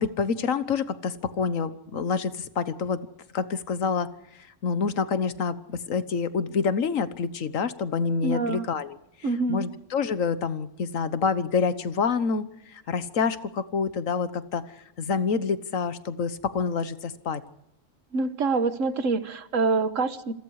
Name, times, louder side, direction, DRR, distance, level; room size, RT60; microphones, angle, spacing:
voice 1, 0.0-3.1 3.3-4.1 4.6-9.0 9.5-14.6 15.0-17.4, left 5 dB, 80° left, 13 dB, 1.6 m, -27 dB
voice 2, 8.2-8.7 9.2-9.6 18.1-20.3, right 3 dB, 75° right, 12 dB, 1.6 m, -26 dB
28.0 x 21.5 x 4.9 m, 0.86 s
omnidirectional pair, 1.4 m